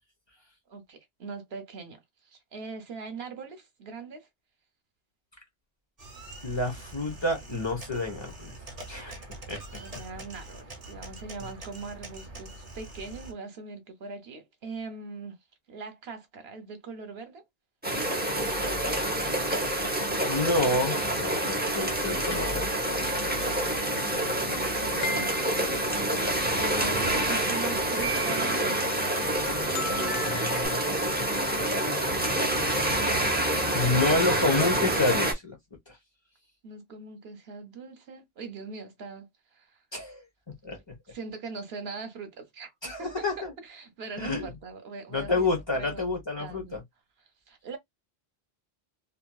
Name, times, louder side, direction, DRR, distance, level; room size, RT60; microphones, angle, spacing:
voice 1, 0.7-4.3 9.7-15.4 15.7-17.4 23.5-25.5 26.6-29.2 36.6-39.8 41.1-46.1 46.4-46.8 47.2-47.8, right 4 dB, 75° right, 1.0 m, -41 dB
sound 1, 6.0-13.3, right 2 dB, 40° right, 0.9 m, -44 dB
voice 2, 6.4-8.5 8.9-9.8 11.4-11.5 20.3-22.7 23.0-23.1 26.6-26.8 33.7-35.6 39.9-40.2 40.6-40.8 42.8-43.5 44.2-44.5 45.1-46.8, left 2 dB, 25° left, 1.0 m, -28 dB
sound 2, 17.8-35.3, right 1 dB, 10° right, 0.5 m, -27 dB
sound 3, 22.3-23.1 25.0-25.8 28.0-28.6 29.2-30.7, equal, 70° left, 1.1 m, -36 dB
2.9 x 2.7 x 2.3 m
omnidirectional pair, 1.1 m